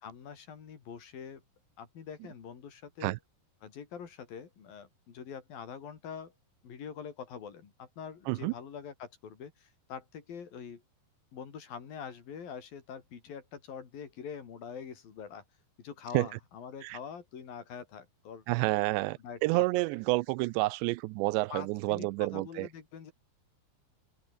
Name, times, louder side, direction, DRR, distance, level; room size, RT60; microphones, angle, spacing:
voice 1, 0.0-1.4 1.8-3.2 3.6-6.3 6.6-10.8 11.3-15.4 15.8-18.4 19.2-19.6 21.5-23.1, left 7 dB, 55° left, 4.7 m, -44 dB
voice 2, 18.5-22.7, right 22 dB, 85° right, 2.8 m, -29 dB
omnidirectional pair, 5.1 m